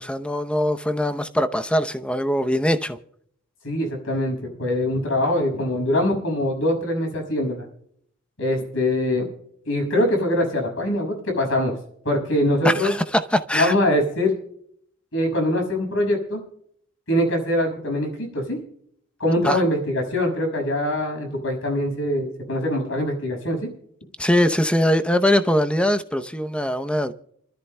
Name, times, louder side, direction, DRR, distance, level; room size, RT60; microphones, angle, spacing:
voice 1, 0.0-3.0 12.6-13.7 19.4-19.6 24.2-27.1, left 1 dB, 5° left, 0.7 m, -22 dB
voice 2, 3.6-7.7 8.4-9.3 9.6-11.8 12.0-12.9 13.5-14.3 15.1-16.4 17.1-18.6 19.2-23.7, left 1 dB, 65° left, 6.1 m, -23 dB
28.0 x 13.5 x 2.2 m
head